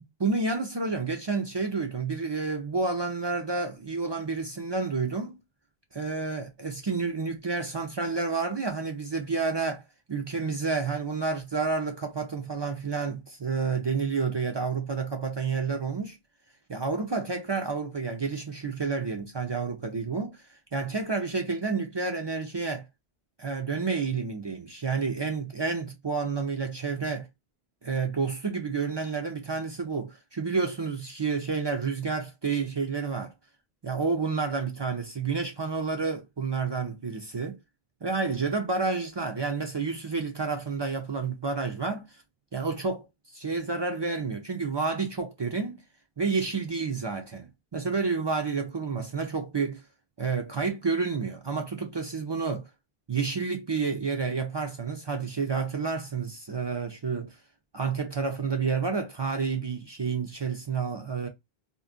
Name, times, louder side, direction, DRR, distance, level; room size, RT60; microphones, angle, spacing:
voice 1, 0.2-5.4 5.9-9.8 10.1-16.2 16.7-20.4 20.7-22.8 23.4-27.3 27.8-33.3 33.8-37.6 38.0-42.1 42.5-43.1 43.3-45.8 46.2-49.8 50.2-52.7 53.1-57.3 57.7-61.3, right 4 dB, 45° right, 0.3 m, -30 dB
2.4 x 2.2 x 3.6 m
omnidirectional pair, 1.0 m